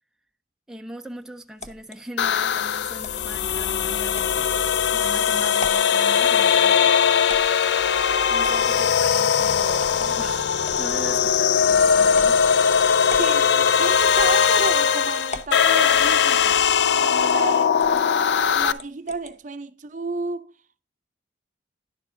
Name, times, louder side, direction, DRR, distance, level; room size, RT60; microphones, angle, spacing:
voice 1, 0.7-4.6 4.9-6.9 8.3-12.5, right 1 dB, 5° right, 0.4 m, -39 dB
sound 1, 1.6-2.0 3.0-3.3 4.1-4.4 4.9-5.0 5.5-5.9 7.3-7.8 8.4-8.9 9.6-10.2 10.6-11.5 12.1-12.4 13.1-13.4 14.1-14.7 15.3-15.6 16.6-16.8 17.1-17.4 17.8-18.0 18.7-19.3, left 2 dB, 40° left, 0.8 m, -39 dB
sound 2, 2.2-18.7, left 7 dB, 70° left, 0.4 m, -20 dB
voice 2, 13.2-16.6 17.0-20.5, right 4 dB, 45° right, 0.6 m, -32 dB
11.0 x 7.0 x 3.8 m
head